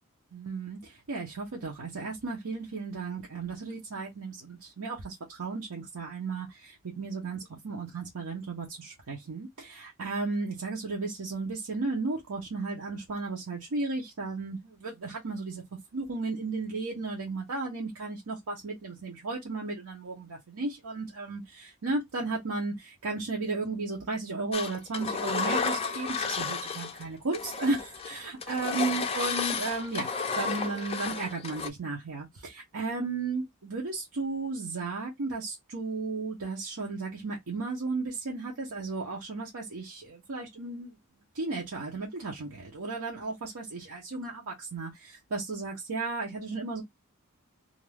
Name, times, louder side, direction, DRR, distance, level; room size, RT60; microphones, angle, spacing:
voice 1, 0.3-15.6 15.9-30.1 30.4-41.0 41.3-46.8, right 3 dB, 80° right, 0.7 m, -34 dB
Engine, 24.5-27.0 27.3-31.7, left 5 dB, 25° left, 0.4 m, -32 dB
2.5 x 2.3 x 3.2 m
head